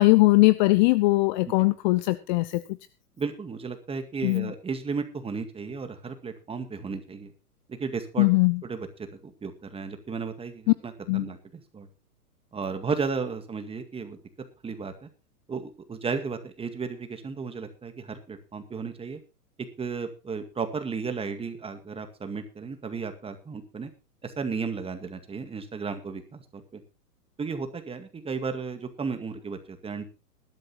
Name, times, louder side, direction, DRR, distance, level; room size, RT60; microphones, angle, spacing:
voice 1, 0.0-2.6 4.2-4.5 8.2-8.6 11.1-11.3, left 21 dB, 30° left, 16 dB, 0.6 m, -20 dB
voice 2, 3.2-7.3 7.7-8.3 8.6-11.9 12.5-14.2 14.6-15.1 15.5-19.2 19.8-23.9 24.2-26.8 27.4-30.1, right 5 dB, 10° right, 8 dB, 1.9 m, -34 dB
19.0 x 12.5 x 2.9 m, 0.30 s
hypercardioid pair, 120°, 47 cm